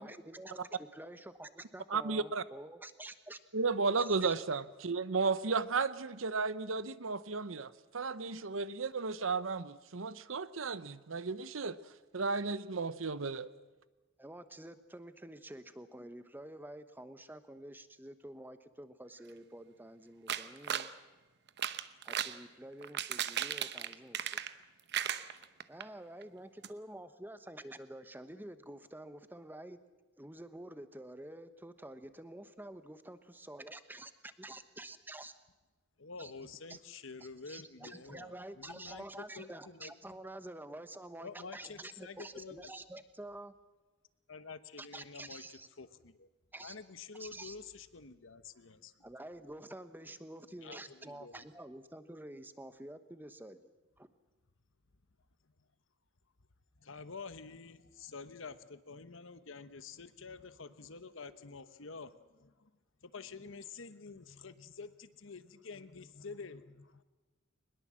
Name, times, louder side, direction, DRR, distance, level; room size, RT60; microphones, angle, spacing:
voice 1, 0.0-3.4 4.0-4.3 14.2-20.9 22.0-24.4 25.7-29.8 30.2-35.3 36.2-36.3 36.7-36.8 37.5-43.5 44.8-45.7 46.5-46.8 47.2-47.6 49.0-53.6 54.0-54.1, right 1 dB, 10° right, 11 dB, 1.1 m, -48 dB
voice 2, 1.9-2.4 3.5-11.8 12.1-13.5, right 4 dB, 80° right, 15 dB, 0.9 m, -34 dB
sound 1, 20.3-20.9 21.5-22.4 22.8-24.6 24.9-25.8 26.2-26.3 26.6-26.7, right 9 dB, 55° right, 0.9 m, -36 dB
voice 3, 36.0-40.1 41.2-42.7 44.3-46.3 46.6-49.1 50.6-51.5 56.8-62.7 63.0-67.0, left 4 dB, 70° left, 12 dB, 1.1 m, -49 dB
22.5 x 21.0 x 7.6 m, 1.2 s
head